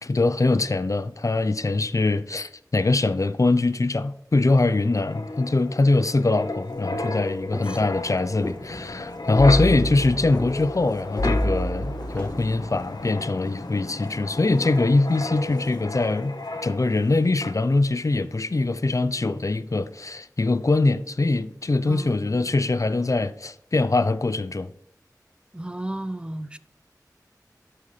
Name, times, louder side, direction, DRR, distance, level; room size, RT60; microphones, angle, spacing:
voice 1, 0.0-24.7, left 2 dB, 50° left, 0.5 m, -23 dB
Wind, 4.7-17.1 17.4-17.7, left 1 dB, 75° left, 0.9 m, -31 dB
sound 1, 6.7-12.3, left 1 dB, 15° left, 2.0 m, -37 dB
voice 2, 21.9-22.4 25.5-26.6, right 1 dB, 15° right, 0.5 m, -34 dB
12.5 x 5.6 x 3.3 m
wide cardioid pair, 55°, 7 cm